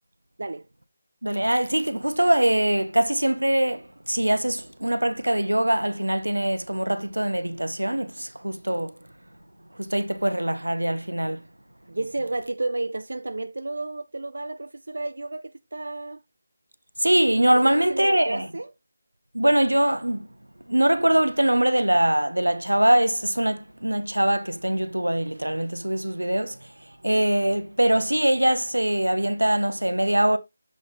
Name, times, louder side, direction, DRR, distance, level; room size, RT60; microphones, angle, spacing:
voice 1, 1.2-8.9 9.8-11.5 17.0-18.5 19.3-20.3 20.7-26.6 27.0-30.4, right 1 dB, 85° right, 0.8 m, -22 dB
voice 2, 11.9-16.2 17.5-18.7, right 2 dB, 65° right, 0.4 m, -32 dB
7.5 x 3.5 x 3.9 m
figure-of-eight pair, 155°, 0 cm